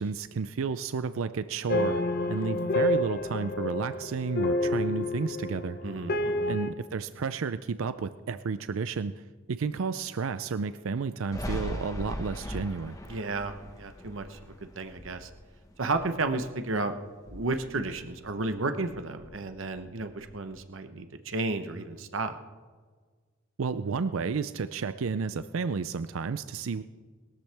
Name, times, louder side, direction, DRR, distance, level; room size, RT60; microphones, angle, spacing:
voice 1, 0.0-2.0 2.3-5.8 6.5-9.2 9.5-13.0 23.6-26.8, right 5 dB, 90° right, 12 dB, 0.5 m, -31 dB
sound 1, 1.7-6.7, left 2 dB, 50° left, 0.9 m, -29 dB
voice 2, 5.8-6.6 13.1-15.3 15.8-16.9 17.3-22.4, right 3 dB, 75° right, 8 dB, 1.0 m, -33 dB
Thunder, 11.3-16.8 17.1-18.6 18.8-20.6, left 1 dB, 20° left, 1.3 m, -40 dB
21.0 x 13.5 x 3.4 m, 1.5 s
head